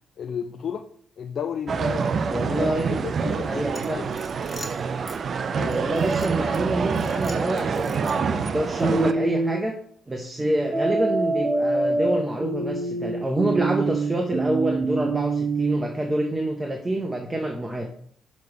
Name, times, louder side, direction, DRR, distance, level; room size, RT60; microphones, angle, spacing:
voice 1, 0.2-0.9 1.2-2.2 2.5-3.6 3.9-4.1, left 7 dB, 55° left, 0.4 m, -32 dB
sound 1, 1.7-9.1, right 5 dB, 50° right, 0.4 m, -26 dB
voice 2, 2.3-3.0 3.5-4.0 5.5-9.8 10.1-17.9, right 1 dB, 15° right, 0.8 m, -27 dB
sound 2, 3.7-5.2 5.7-6.6 6.9-8.4, left 2 dB, 25° left, 1.1 m, -43 dB
sound 3, 8.8-9.6 10.7-15.8, right 2 dB, 35° right, 1.1 m, -25 dB
6.7 x 3.2 x 4.7 m
cardioid pair, 90°, 0 cm